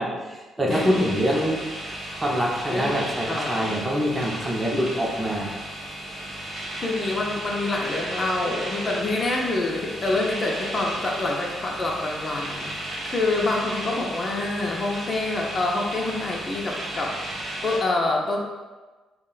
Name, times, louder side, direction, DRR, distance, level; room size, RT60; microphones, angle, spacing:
voice 1, 0.0-1.6 2.1-5.5, equal, 15° right, -2 dB, 0.5 m, -25 dB
sound 1, 0.7-17.8, right 1 dB, 55° right, 0.7 m, -34 dB
voice 2, 2.7-3.8 6.4-18.4, left 2 dB, 35° left, -1 dB, 0.4 m, -27 dB
2.3 x 2.1 x 3.8 m, 1.3 s
cardioid pair, 100°, 0 cm